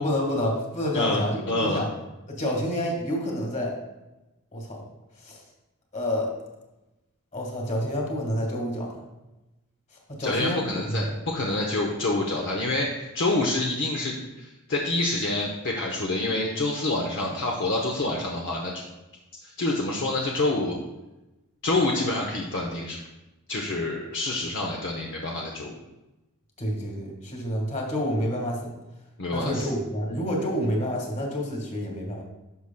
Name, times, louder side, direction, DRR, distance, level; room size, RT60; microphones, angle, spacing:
voice 1, 0.0-1.9 2.3-3.7 4.5-4.8 5.2-5.4 5.9-6.3 7.3-9.0 10.2-11.1 26.6-28.7 29.3-32.2, equal, 35° left, 0 dB, 1.7 m, -28 dB
voice 2, 0.9-1.8 10.2-18.8 19.4-20.8 21.6-23.0 23.5-25.7 29.2-29.7, left 2 dB, 55° left, -1 dB, 0.8 m, -27 dB
11.0 x 6.3 x 2.2 m, 1.0 s
head